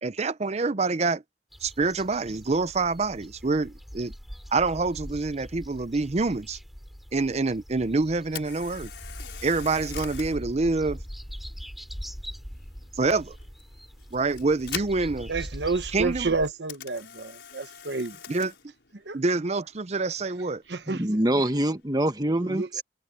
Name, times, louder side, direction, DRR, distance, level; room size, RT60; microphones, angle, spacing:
voice 1, 0.0-1.2 1.6-4.1 4.5-6.6 7.1-8.9 9.4-11.0 13.0-13.4 14.1-15.3 15.9-16.3 18.3-18.5 19.1-20.6, right 3 dB, 40° right, 0.6 m, -26 dB
sound 1, 1.5-16.5, equal, ahead, 5.1 m, -42 dB
Camera, 8.2-22.3, left 9 dB, 75° left, 5.4 m, -45 dB
voice 2, 15.3-18.2 19.1-19.2 20.7-21.2 22.4-22.8, right 3 dB, 70° right, 1.0 m, -30 dB
voice 3, 20.9-22.8, right 1 dB, 20° right, 1.4 m, -25 dB
head